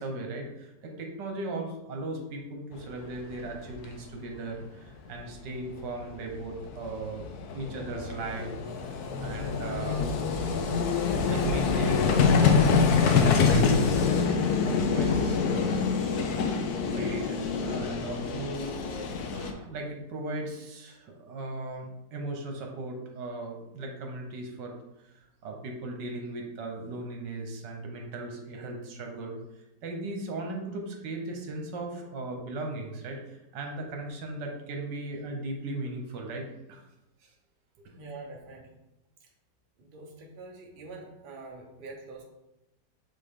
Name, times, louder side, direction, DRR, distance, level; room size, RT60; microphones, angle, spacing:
voice 1, 0.0-7.3 7.5-10.1 11.2-14.3 14.6-16.2 16.7-18.7 19.3-24.8 25.0-29.4 29.8-36.8 37.2-37.3, right 2 dB, 80° right, 2 dB, 1.6 m, -37 dB
Vehicle, 3.4-3.5 3.7-3.9 5.8-5.9 6.1-19.5, left 5 dB, 70° left, 1.1 m, -25 dB
voice 2, 37.9-38.7 39.8-42.2, right 3 dB, 35° right, -1 dB, 1.0 m, -45 dB
7.5 x 3.7 x 3.7 m, 0.91 s
omnidirectional pair, 1.9 m